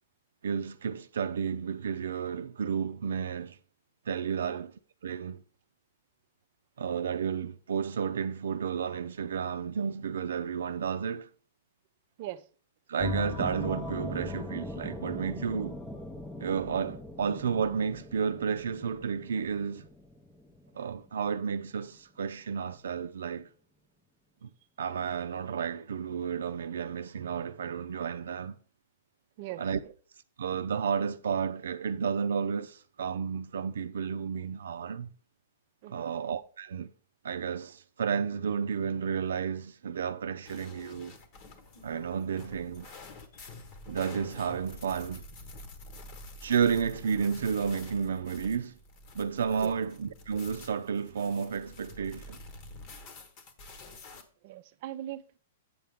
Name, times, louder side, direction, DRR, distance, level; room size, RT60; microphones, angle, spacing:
voice 1, 0.4-3.6 4.1-4.7 5.0-5.4 6.8-11.3 12.9-15.8 16.4-19.8 20.7-23.5 24.4-24.5 24.8-28.5 29.6-29.8 30.4-35.1 35.9-36.9 37.2-41.1 41.8-42.9 43.9-45.2 46.4-48.7 49.1-52.4, right 6 dB, 90° right, 0.5 m, -32 dB
sound 1, 13.0-21.3, left 2 dB, 5° left, 0.6 m, -40 dB
sound 2, 40.5-54.2, left 2 dB, 35° left, 1.1 m, -48 dB
voice 2, 54.4-55.4, right 14 dB, 40° right, 0.5 m, -40 dB
8.5 x 5.8 x 3.5 m
hypercardioid pair, 155°, 0 cm